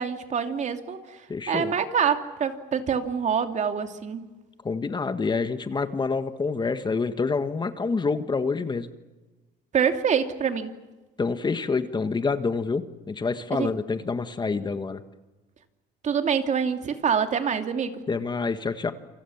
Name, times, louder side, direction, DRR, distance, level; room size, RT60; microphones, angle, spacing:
voice 1, 0.0-4.2 9.7-10.7 13.6-13.7 16.0-18.0, right 7 dB, 45° right, 6 dB, 2.8 m, -26 dB
voice 2, 1.3-1.7 4.6-8.9 11.2-15.0 18.1-18.9, left 4 dB, 25° left, 10 dB, 1.6 m, -27 dB
28.5 x 25.5 x 7.3 m, 1.1 s
cardioid pair, 110°, 17 cm